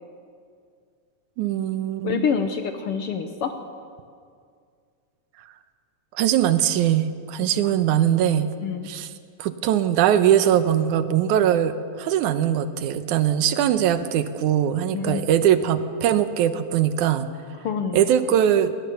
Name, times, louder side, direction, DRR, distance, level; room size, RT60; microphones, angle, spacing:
voice 1, 1.4-2.3 6.1-8.5 8.9-9.1 9.4-17.3 17.9-18.7, right 10 dB, 85° right, 11 dB, 2.3 m, -21 dB
voice 2, 2.0-3.5 7.4-7.5 8.6-8.9 14.9-15.5 17.6-18.1, left 6 dB, 65° left, 7 dB, 1.6 m, -27 dB
19.5 x 19.5 x 6.9 m, 2.2 s
omnidirectional pair, 3.4 m